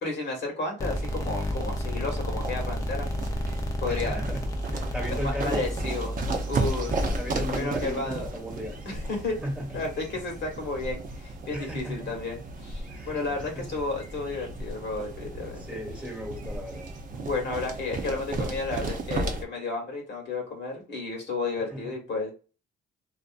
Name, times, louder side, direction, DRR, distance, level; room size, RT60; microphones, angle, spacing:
voice 1, 0.0-3.1 3.8-4.2 5.1-6.1 6.5-6.9 7.3-8.3 8.8-9.4 9.7-15.6 17.1-22.3, left 3 dB, 65° left, 1 dB, 1.2 m, -32 dB
sound 1, 0.8-7.6, equal, 15° left, 0.5 m, -31 dB
sound 2, 0.9-19.4, right 2 dB, 40° right, 0.6 m, -35 dB
voice 2, 3.9-5.6 7.2-8.9 9.4-9.8 11.5-12.1 12.9-13.1 13.5-13.7 15.7-16.9 21.7-21.9, equal, 5° right, 0 dB, 1.2 m, -36 dB
2.5 x 2.4 x 2.4 m, 0.33 s
cardioid pair, 90°, 20 cm